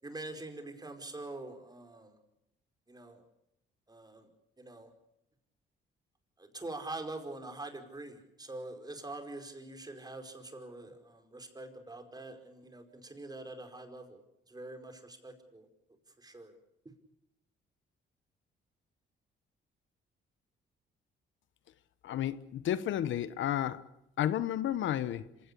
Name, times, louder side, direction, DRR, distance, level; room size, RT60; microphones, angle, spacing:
voice 1, 0.0-2.2 2.9-3.3 3.9-4.3 4.6-4.9 6.4-15.7 16.2-16.5, right 2 dB, 20° right, 5.0 m, -44 dB
voice 2, 22.0-23.8 24.2-25.3, left 11 dB, 75° left, 1.1 m, -32 dB
26.0 x 17.0 x 8.4 m
cardioid pair, 90°, 20 cm